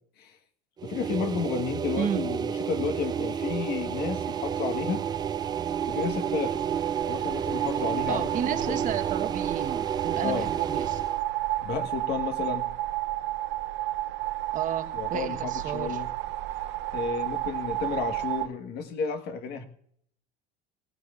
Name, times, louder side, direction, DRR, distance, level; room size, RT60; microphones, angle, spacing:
voice 1, 0.8-5.0 5.9-6.6 7.1-8.9 10.2-10.5 11.6-12.7 14.9-16.1 16.9-19.6, left 6 dB, 55° left, 6 dB, 1.4 m, -32 dB
sound 1, 0.8-11.2, right 7 dB, 20° right, 0.4 m, -31 dB
voice 2, 2.0-2.3 8.1-11.0 14.5-16.0, right 9 dB, 40° right, 8 dB, 1.2 m, -32 dB
sound 2, 2.5-18.5, right 16 dB, 65° right, 0.7 m, -32 dB
19.5 x 16.0 x 2.4 m, 0.68 s
cardioid pair, 130°, 20 cm